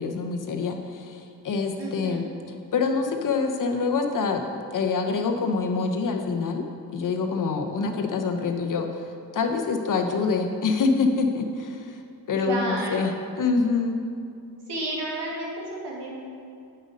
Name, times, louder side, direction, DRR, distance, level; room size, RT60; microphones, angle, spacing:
voice 1, 0.0-2.3 2.7-4.4 4.7-6.6 6.9-12.0 12.3-14.0, left 4 dB, 50° left, 4 dB, 0.9 m, -26 dB
voice 2, 1.8-2.2 12.4-13.1 14.7-16.1, right 1 dB, 85° right, -4 dB, 2.2 m, -31 dB
7.8 x 6.5 x 5.2 m, 2.4 s
cardioid pair, 110°, 40 cm